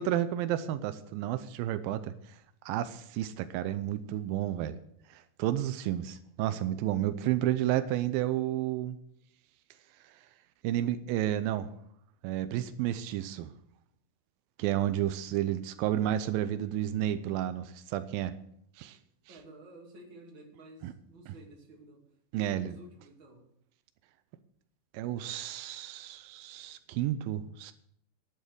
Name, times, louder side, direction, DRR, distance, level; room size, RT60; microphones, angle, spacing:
voice 1, 0.0-2.4 2.7-4.8 5.1-9.0 10.6-11.7 12.2-13.5 14.6-18.4 18.8-19.0 20.8-20.9 22.3-22.7 24.9-27.7, right 12 dB, 85° right, 11 dB, 2.4 m, -31 dB
voice 2, 19.3-22.0 22.3-23.5, right 1 dB, 35° right, 0 dB, 2.9 m, -52 dB
11.0 x 9.1 x 6.5 m, 0.70 s
omnidirectional pair, 4.0 m